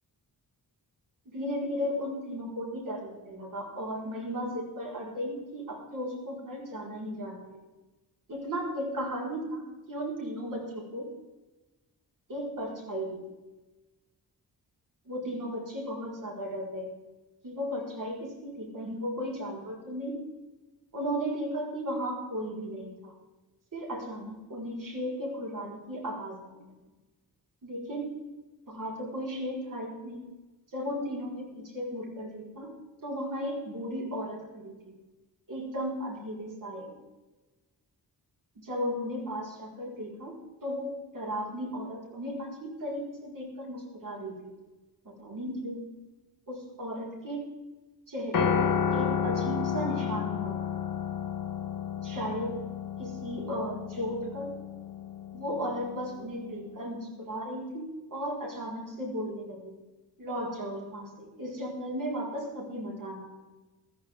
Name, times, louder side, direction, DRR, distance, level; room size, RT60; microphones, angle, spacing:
voice 1, 1.3-7.6 8.3-9.6 9.9-11.1 12.3-13.2 15.1-16.9 17.4-20.2 20.9-23.1 23.7-26.7 27.6-28.2 28.7-30.3 30.7-32.7 33.0-34.9 35.5-36.9 38.6-40.3 40.6-44.6 45.1-45.8 46.5-47.5 48.1-50.6 52.0-52.6 53.0-54.6 55.3-59.7 60.2-63.3, equal, 55° right, -2 dB, 5.1 m, -35 dB
Piano, 48.3-56.6, left 7 dB, 60° left, 1.3 m, -32 dB
14.5 x 14.5 x 3.8 m, 1.1 s
wide cardioid pair, 155°, 37 cm